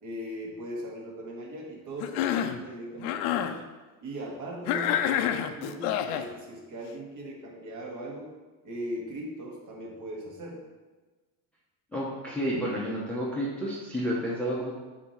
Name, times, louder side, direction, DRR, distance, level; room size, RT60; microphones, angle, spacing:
voice 1, 0.0-3.6 4.0-8.3 8.6-10.6, right 1 dB, 40° right, -2 dB, 1.6 m, -39 dB
Cough, 2.0-2.6 3.0-3.6 4.7-6.3, left 10 dB, 75° left, 0.6 m, -28 dB
voice 2, 11.9-14.7, equal, 5° left, -7 dB, 0.8 m, -30 dB
8.2 x 2.9 x 5.7 m, 1.3 s
cardioid pair, 160°, 44 cm